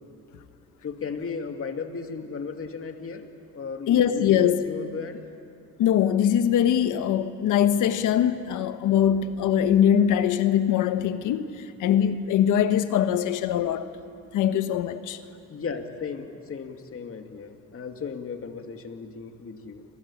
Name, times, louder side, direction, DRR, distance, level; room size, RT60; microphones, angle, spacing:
voice 1, 0.8-3.3 3.5-5.2 15.5-19.8, left 5 dB, 50° left, 5 dB, 2.5 m, -35 dB
voice 2, 3.9-4.7 5.8-13.9 14.3-15.2, left 9 dB, 85° left, 10 dB, 1.4 m, -22 dB
30.0 x 22.0 x 8.7 m, 2.5 s
cardioid pair, 90°, 30 cm